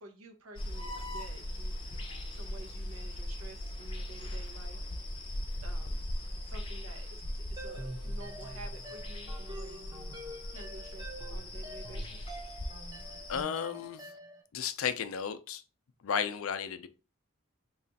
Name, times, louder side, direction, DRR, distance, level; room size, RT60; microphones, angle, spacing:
voice 1, 0.0-1.9 2.3-10.2 10.5-12.3, right 2 dB, 90° right, 0.9 m, -51 dB
sound 1, 0.6-13.4, left 1 dB, 25° left, 0.5 m, -39 dB
sound 2, 7.6-14.4, right 1 dB, 20° right, 0.6 m, -47 dB
voice 2, 13.3-14.1 14.5-15.6 16.0-16.9, left 7 dB, 85° left, 0.4 m, -33 dB
3.2 x 2.4 x 3.9 m
head